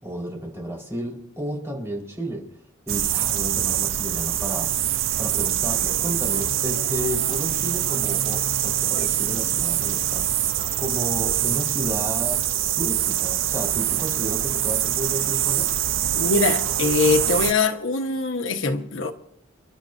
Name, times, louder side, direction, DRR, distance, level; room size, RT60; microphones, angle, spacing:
voice 1, 0.0-2.4 2.9-4.7 5.2-10.5 10.8-12.4 12.8-15.7, equal, 15° right, 4.4 m, -32 dB
sound 1, 2.9-17.5, right 11 dB, 85° right, 0.6 m, -24 dB
sound 2, 5.0-10.8, left 2 dB, 60° left, 3.1 m, -45 dB
voice 2, 16.2-19.1, left 3 dB, 80° left, 1.2 m, -22 dB
29.5 x 11.5 x 2.7 m
head